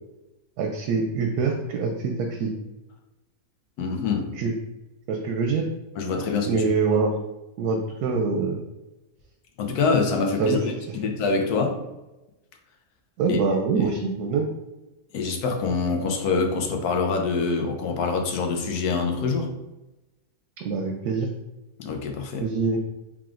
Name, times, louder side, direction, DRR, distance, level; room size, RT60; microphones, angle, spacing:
voice 1, 0.6-2.5 4.4-4.5 5.1-5.7 6.5-7.1 7.6-8.6 10.4-10.6 13.2-14.5 20.6-21.3 22.4-22.8, right 4 dB, 85° right, 2 dB, 1.1 m, -24 dB
voice 2, 3.8-4.3 6.0-6.7 9.6-11.8 13.3-13.4 13.8-13.9 15.1-19.5 21.8-22.4, left 4 dB, 80° left, 3 dB, 1.2 m, -25 dB
4.8 x 3.4 x 2.5 m, 1.0 s
omnidirectional pair, 1.6 m